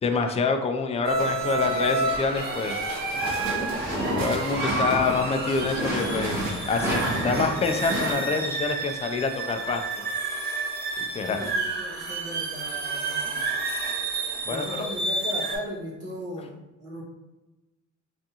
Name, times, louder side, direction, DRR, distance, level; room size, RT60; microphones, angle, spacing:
voice 1, 0.0-2.8 4.2-9.8 11.0-11.5 14.5-14.6, left 4 dB, 20° left, 5 dB, 0.3 m, -26 dB
sound 1, 1.0-15.6, right 3 dB, 30° right, 1.0 m, -30 dB
sound 2, 1.1-7.5, right 2 dB, 70° right, 0.9 m, -39 dB
sound 3, 3.1-8.1, right 1 dB, 10° right, 1.4 m, -30 dB
voice 2, 11.3-13.5 14.5-17.0, equal, 50° right, -3 dB, 1.2 m, -37 dB
3.5 x 2.5 x 2.8 m, 1.1 s
cardioid pair, 90°, 30 cm